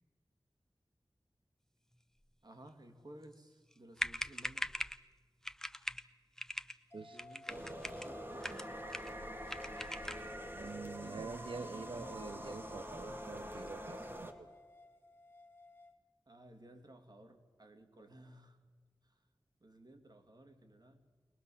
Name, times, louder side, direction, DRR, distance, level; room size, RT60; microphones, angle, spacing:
voice 1, 2.4-4.8 7.1-9.1 10.6-11.3 16.3-18.6 19.0-19.1 19.6-21.0, right 1 dB, 50° right, 4 dB, 2.7 m, -57 dB
sound 1, 3.7-3.8 4.0-5.0 5.4-6.0 6.4-6.8 7.1-8.1 8.4-9.2 9.5-10.3, equal, 5° left, 0.8 m, -41 dB
sound 2, 6.9-15.9, left 2 dB, 25° left, 1.8 m, -56 dB
sound 3, 7.5-14.3, equal, 25° right, 2.4 m, -45 dB
voice 2, 10.5-14.5, right 4 dB, 75° right, 13 dB, 0.8 m, -46 dB
23.0 x 20.5 x 7.2 m, 1.4 s
wide cardioid pair, 65°, 9 cm